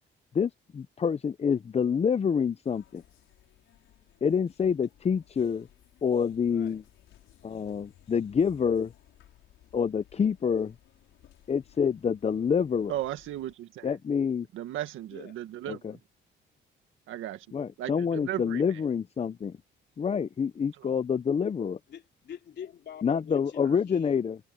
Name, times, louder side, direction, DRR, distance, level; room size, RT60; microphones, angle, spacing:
voice 1, 0.3-3.0 4.2-5.7 6.0-6.8 7.4-8.9 9.7-10.7 11.5-12.9 13.8-14.5 15.7-15.9 17.5-19.6 20.0-21.8 23.0-24.4, left 6 dB, 30° left, 0.6 m, -27 dB
sound 1, 2.6-13.5, left 13 dB, 85° left, 5.3 m, -59 dB
voice 2, 6.4-6.8 15.1-15.4 21.9-24.2, left 8 dB, 60° left, 3.2 m, -45 dB
voice 3, 12.9-14.0 14.5-16.0 17.1-17.5 17.8-18.8 20.8-20.9 23.6-23.8, right 13 dB, 85° right, 1.8 m, -36 dB
cardioid pair, 90°, 20 cm